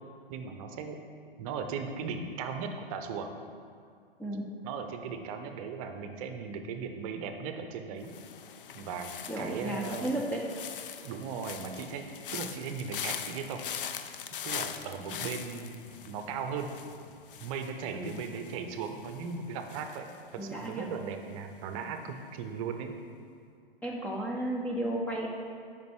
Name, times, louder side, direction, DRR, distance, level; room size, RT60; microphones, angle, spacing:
voice 1, 0.3-1.0 1.4-3.3 4.6-8.1 8.7-9.1 9.4-10.1 11.0-13.9 14.4-16.7 17.4-20.1 20.3-22.9, right 6 dB, 35° right, 6 dB, 0.7 m, -37 dB
sound 1, 8.0-21.1 21.3-21.8, left 8 dB, 60° left, 0.6 m, -42 dB
voice 2, 9.3-10.4 17.9-18.2 20.3-20.9 23.8-25.3, right 1 dB, 5° left, -3 dB, 0.4 m, -33 dB
8.1 x 5.3 x 4.6 m, 2.2 s
figure-of-eight pair, 110°, 30 cm